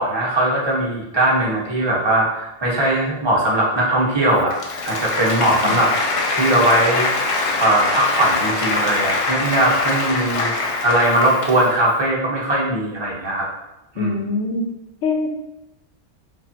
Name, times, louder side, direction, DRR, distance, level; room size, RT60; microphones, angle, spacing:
voice 1, 0.0-4.5 4.8-5.9 6.3-7.1 7.4-10.5 10.8-13.5 13.9-14.1, right 1 dB, 25° right, -4 dB, 0.9 m, -19 dB
Applause, 4.4-11.8, left 3 dB, 60° left, 0.3 m, -23 dB
voice 2, 14.0-14.6 15.0-15.3, left 3 dB, 85° left, 3 dB, 0.9 m, -23 dB
5.0 x 2.4 x 2.7 m, 0.90 s
omnidirectional pair, 1.2 m